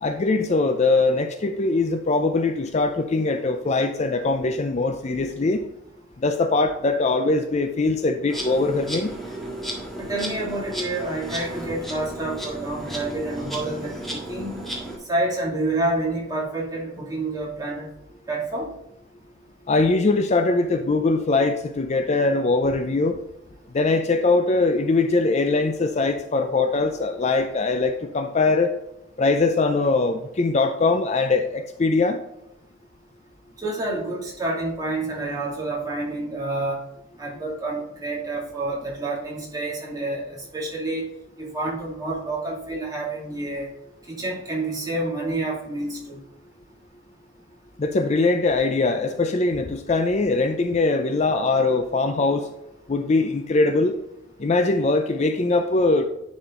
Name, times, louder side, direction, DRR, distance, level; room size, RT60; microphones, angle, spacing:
voice 1, 0.0-5.7 6.2-9.2 19.7-23.2 23.7-28.7 29.2-32.2 47.8-52.5 52.9-53.9 54.4-56.0, left 3 dB, 35° left, 6 dB, 0.4 m, -22 dB
Insect, 8.3-15.0, right 1 dB, ahead, 1.5 m, -34 dB
voice 2, 10.0-14.6 15.1-17.9 18.3-18.7 33.6-36.8 37.2-41.0 41.4-43.7 44.1-46.2, right 2 dB, 20° right, -4 dB, 2.3 m, -28 dB
10.0 x 4.3 x 3.7 m, 0.85 s
head